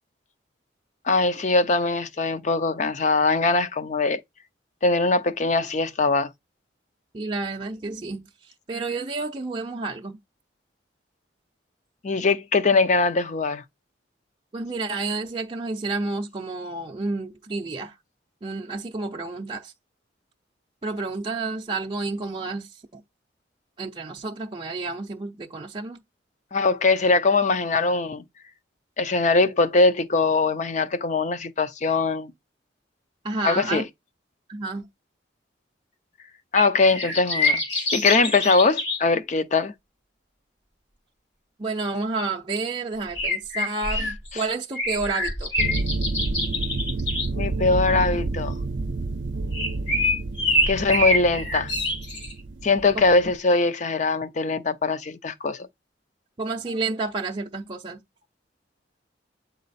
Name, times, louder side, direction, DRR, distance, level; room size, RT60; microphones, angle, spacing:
voice 1, 1.1-4.2 4.8-6.3 12.0-13.6 26.5-28.2 29.0-32.3 33.4-33.8 36.5-37.6 37.9-39.7 44.3-44.4 47.3-48.6 50.6-51.7 52.6-55.7, left 3 dB, 40° left, 0.5 m, -22 dB
voice 2, 7.1-10.2 14.5-18.0 18.4-19.7 20.8-23.0 23.8-26.0 33.2-33.8 34.5-34.8 41.6-45.5 56.4-58.0, right 3 dB, 30° right, 0.5 m, -30 dB
sound 1, 36.5-39.0 43.1-44.4 44.7-47.3 49.5-52.3, left 1 dB, 70° left, 2.9 m, -25 dB
sound 2, 45.6-53.4, right 3 dB, 75° right, 0.5 m, -29 dB
8.5 x 4.1 x 4.1 m
head